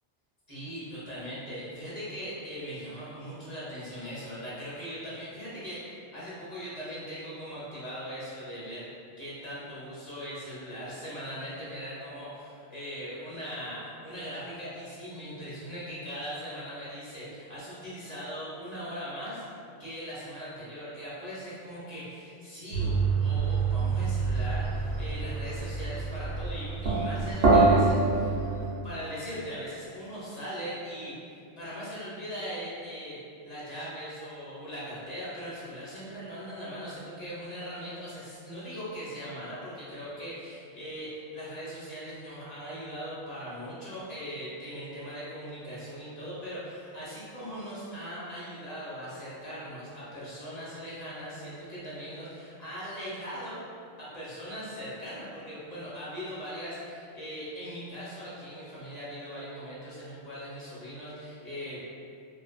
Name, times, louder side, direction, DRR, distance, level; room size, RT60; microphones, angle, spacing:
voice 1, 0.5-8.9 9.2-19.4 19.8-28.4 28.8-31.1 31.6-33.2 33.4-53.6 54.0-61.8, equal, 45° left, -9 dB, 0.7 m, -40 dB
sound 1, 22.7-28.7, right 3 dB, 65° right, 0.8 m, -26 dB
2.4 x 2.4 x 2.4 m, 2.4 s
omnidirectional pair, 1.1 m